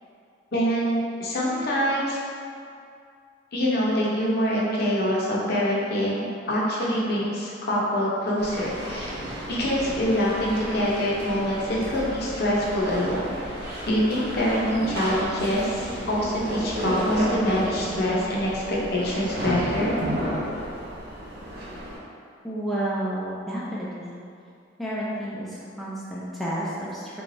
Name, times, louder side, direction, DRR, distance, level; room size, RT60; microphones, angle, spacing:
voice 1, 0.5-2.2 3.5-9.1 9.5-13.3 13.9-20.0 20.3-20.4, equal, 55° left, -5 dB, 0.7 m, -25 dB
sound 1, 8.4-22.0, equal, 55° right, 0.7 m, -32 dB
voice 2, 22.4-24.2 24.8-27.2, right 1 dB, ahead, -8 dB, 0.4 m, -31 dB
3.4 x 3.2 x 2.5 m, 2.4 s
head